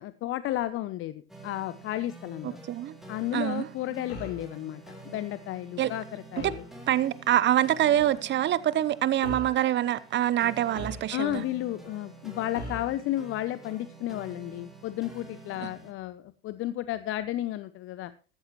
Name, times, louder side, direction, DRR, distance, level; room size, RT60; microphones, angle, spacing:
voice 1, 0.0-2.6 3.1-6.6 11.1-18.1, left 14 dB, 40° left, 0.7 m, -33 dB
sound 1, 1.3-15.9, right 3 dB, ahead, 3.7 m, -48 dB
voice 2, 2.4-3.0 3.3-3.7 5.8-5.9 6.4-6.5 6.9-11.4 15.6-15.7, right 12 dB, 35° right, 0.8 m, -25 dB
sound 2, 4.1-4.5 6.4-6.7 8.0-8.2 9.2-9.6 10.7-11.4 12.5-13.0, left 1 dB, 80° left, 4.0 m, -40 dB
13.5 x 13.5 x 3.1 m
figure-of-eight pair, 70°, 32 cm